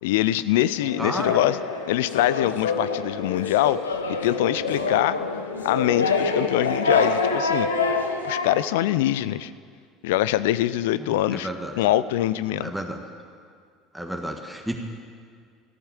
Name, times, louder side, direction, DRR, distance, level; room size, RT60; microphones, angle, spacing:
voice 1, 0.0-1.6 1.9-3.8 4.2-5.2 5.6-7.7 8.2-9.5 10.0-11.5 11.8-12.7, left 13 dB, 70° left, 16 dB, 0.4 m, -23 dB
sound 1, 0.8-8.6, left 4 dB, 85° left, 0.9 m, -26 dB
voice 2, 1.0-1.4 11.0-11.8 12.6-13.0 13.9-14.8, right 1 dB, 5° right, 2 dB, 1.5 m, -32 dB
14.5 x 8.8 x 9.7 m, 2.1 s
figure-of-eight pair, 65°, 0 cm